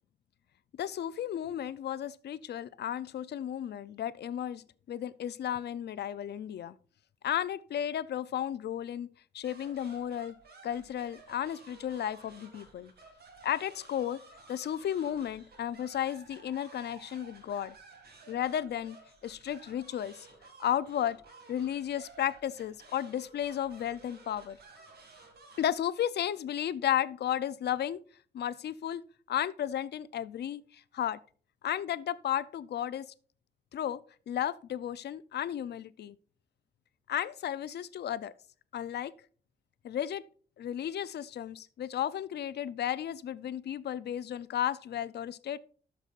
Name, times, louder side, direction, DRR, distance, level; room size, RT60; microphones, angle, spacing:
voice 1, 0.8-6.8 7.2-9.1 9.3-10.4 10.6-12.9 13.4-14.2 14.5-17.8 18.3-19.0 19.2-20.3 20.6-21.2 21.5-24.6 25.6-28.0 28.3-31.2 31.6-33.1 33.7-34.0 34.3-36.2 37.1-38.3 38.7-39.1 39.8-40.2 40.6-45.6, left 10 dB, 70° left, 0.5 m, -33 dB
sound 1, 9.4-25.7, right 3 dB, 65° right, 2.1 m, -55 dB
13.0 x 6.8 x 2.4 m
wide cardioid pair, 160°, 18 cm